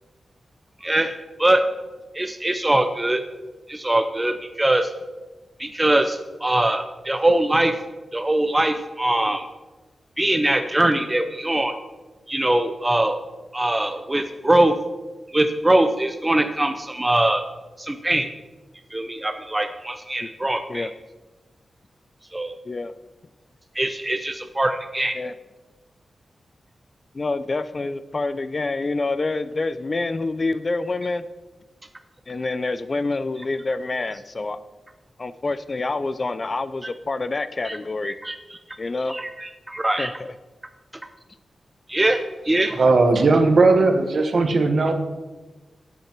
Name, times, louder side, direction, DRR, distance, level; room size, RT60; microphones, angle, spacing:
voice 1, 0.8-1.6 2.1-3.2 3.7-4.9 5.6-7.8 8.1-9.5 10.2-11.8 12.3-13.2 13.5-14.8 15.3-17.4 17.8-18.3 18.9-20.9 22.3-22.6 23.7-25.1 37.6-37.8 38.0-38.6 39.1-40.1 41.9-42.8, right 1 dB, 15° right, 7 dB, 0.6 m, -22 dB
voice 2, 27.1-31.2 32.3-34.6 35.2-38.2 38.8-39.2 40.0-40.3, left 3 dB, 30° left, 13 dB, 0.4 m, -27 dB
voice 3, 42.6-44.9, right 3 dB, 50° right, 7 dB, 1.2 m, -17 dB
13.0 x 8.5 x 4.5 m, 1.2 s
wide cardioid pair, 155°, 0 cm